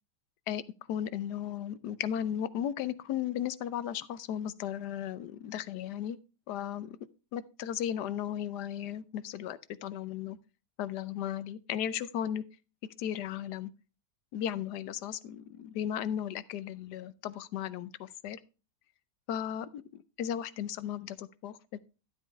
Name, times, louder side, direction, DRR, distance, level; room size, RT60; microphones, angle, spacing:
voice 1, 0.9-6.2 6.5-7.0 7.3-10.4 10.8-12.4 13.0-13.7 14.3-18.4 19.3-21.6, left 10 dB, 75° left, 1.2 m, -35 dB
12.0 x 8.2 x 3.1 m
omnidirectional pair, 1.9 m